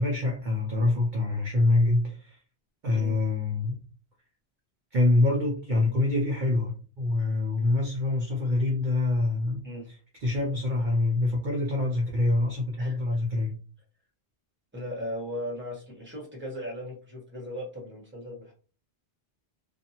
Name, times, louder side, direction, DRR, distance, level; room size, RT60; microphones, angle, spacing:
voice 1, 0.0-2.4 2.8-3.8 4.9-9.7 10.2-13.5, left 2 dB, 55° right, -1 dB, 0.7 m, -25 dB
voice 2, 14.7-18.5, left 1 dB, 10° right, -2 dB, 1.0 m, -37 dB
2.6 x 2.4 x 2.8 m, 0.38 s
omnidirectional pair, 1.1 m